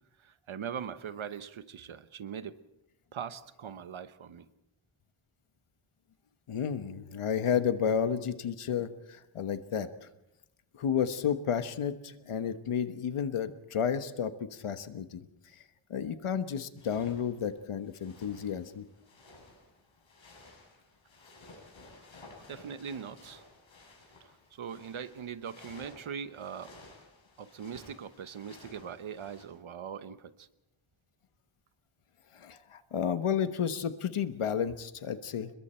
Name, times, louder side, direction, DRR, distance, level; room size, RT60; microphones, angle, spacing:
voice 1, 0.2-2.6 3.1-4.5 19.3-19.4 22.5-23.4 24.5-26.8 27.4-30.5 32.5-32.6, right 7 dB, 70° right, 12 dB, 1.1 m, -41 dB
voice 2, 6.5-10.1 10.8-15.2 15.9-18.8 32.3-35.5, left 8 dB, 90° left, 10 dB, 1.3 m, -32 dB
sound 1, 16.8-29.4, left 2 dB, 65° left, 7.4 m, -55 dB
29.5 x 21.5 x 4.4 m, 0.90 s
wide cardioid pair, 135°, 49 cm